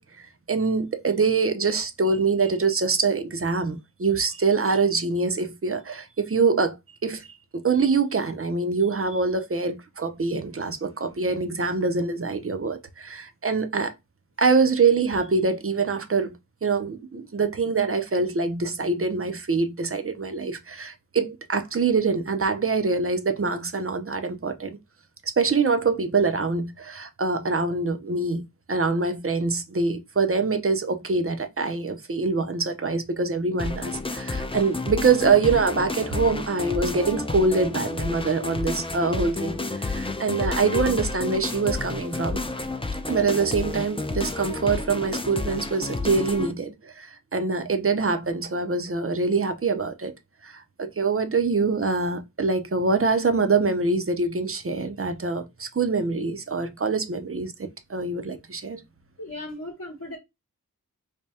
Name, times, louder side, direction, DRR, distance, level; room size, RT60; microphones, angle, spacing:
voice 1, 0.2-6.8 7.0-7.3 7.5-13.9 14.4-16.4 16.6-24.8 25.2-42.4 43.1-50.1 50.4-57.5 57.9-58.8, right 4 dB, 40° right, 0.6 m, -24 dB
sound 1, 33.6-46.5, left 3 dB, 15° left, 0.5 m, -30 dB
voice 2, 59.2-60.2, left 1 dB, 45° left, 0.9 m, -37 dB
3.4 x 2.2 x 4.1 m
wide cardioid pair, 45°, 36 cm